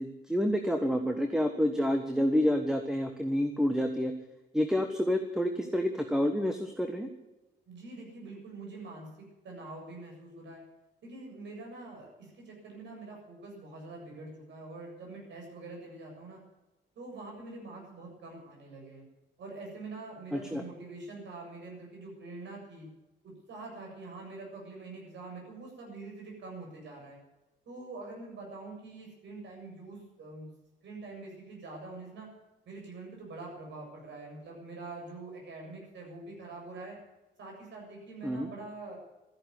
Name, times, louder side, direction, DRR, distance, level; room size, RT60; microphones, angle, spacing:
voice 1, 0.0-4.1 4.5-7.1 20.3-20.6 38.2-38.5, equal, 5° right, 6 dB, 1.3 m, -28 dB
voice 2, 7.7-9.1 9.4-10.6 11.0-16.4 17.0-19.0 19.4-22.9 23.2-27.2 27.7-30.5 30.8-32.3 32.7-37.0 37.4-39.0, right 3 dB, 70° right, 0 dB, 7.5 m, -45 dB
13.5 x 11.0 x 9.7 m, 1.0 s
cardioid pair, 120°, 19 cm